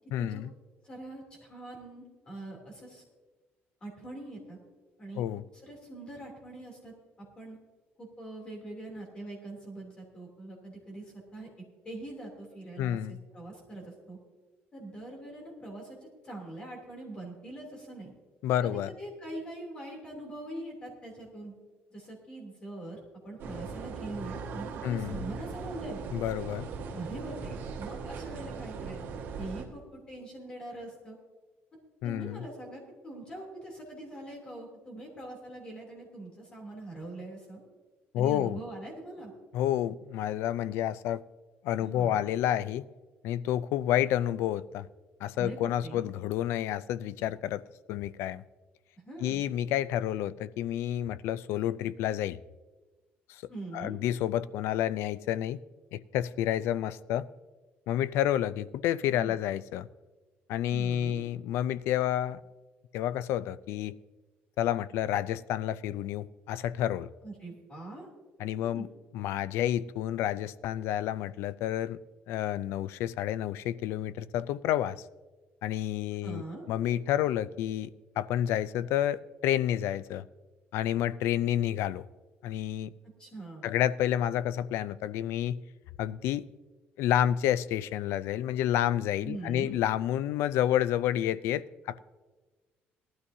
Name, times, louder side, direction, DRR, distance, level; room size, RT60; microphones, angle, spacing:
voice 1, 0.1-0.5 5.2-5.4 12.8-13.2 18.4-18.9 24.8-25.2 26.1-26.7 32.0-32.5 38.1-38.6 39.5-41.2 41.6-42.8 43.2-44.9 45.2-47.6 47.9-48.4 49.2-52.4 53.3-53.4 53.7-55.6 55.9-57.3 57.9-59.9 60.5-62.4 62.9-64.0 64.6-67.1 68.4-68.9 69.1-72.0 72.3-75.0 75.6-80.2 80.7-82.1 82.4-82.9 83.6-85.6 86.0-86.4 87.0-92.0, left 11 dB, 80° left, 0.4 m, -29 dB
voice 2, 0.8-3.0 3.8-4.6 5.0-5.2 5.6-7.6 8.0-11.5 11.8-14.2 14.7-18.1 18.6-18.7 19.0-21.5 21.9-23.0 23.2-26.0 26.9-31.2 32.0-37.6 38.2-39.3 41.8-42.3 45.4-46.0 49.0-49.4 53.5-54.0 59.1-59.4 60.7-61.2 67.2-68.1 68.6-68.8 76.2-76.6 83.2-83.7 89.2-89.8, right 2 dB, 25° left, 3.0 m, -43 dB
sound 1, 23.4-29.7, right 5 dB, 60° right, 1.8 m, -39 dB
18.5 x 12.5 x 2.8 m
cardioid pair, 175°, 4 cm